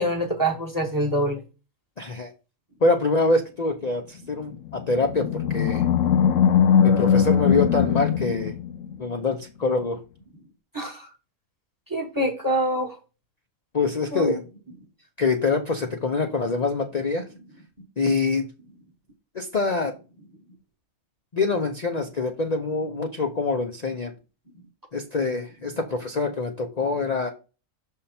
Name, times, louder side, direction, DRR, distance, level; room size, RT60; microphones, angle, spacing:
voice 1, 0.0-1.4 10.7-11.1 11.9-13.0 14.1-14.3, right 1 dB, 15° right, 1.2 m, -25 dB
voice 2, 2.0-2.3 2.8-5.9 6.8-8.5 9.0-10.0 13.7-14.4 15.2-17.2 18.0-18.5 19.3-19.9 21.3-24.1 24.9-27.3, left 3 dB, 40° left, 0.7 m, -25 dB
Animal, 4.6-9.1, left 8 dB, 70° left, 1.0 m, -20 dB
6.6 x 3.6 x 4.2 m
omnidirectional pair, 1.4 m